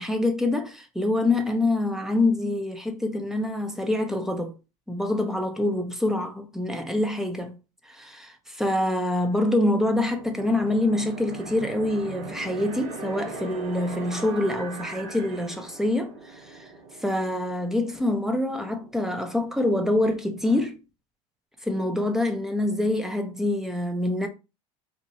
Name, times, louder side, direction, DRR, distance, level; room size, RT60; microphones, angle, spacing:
voice 1, 0.0-4.6 4.9-7.6 7.9-16.7 17.0-20.8 21.6-24.3, left 1 dB, ahead, 0.6 m, -26 dB
sound 1, 10.0-20.7, right 3 dB, 75° right, 1.4 m, -41 dB
4.0 x 2.5 x 2.9 m
supercardioid pair, 125°, 18 cm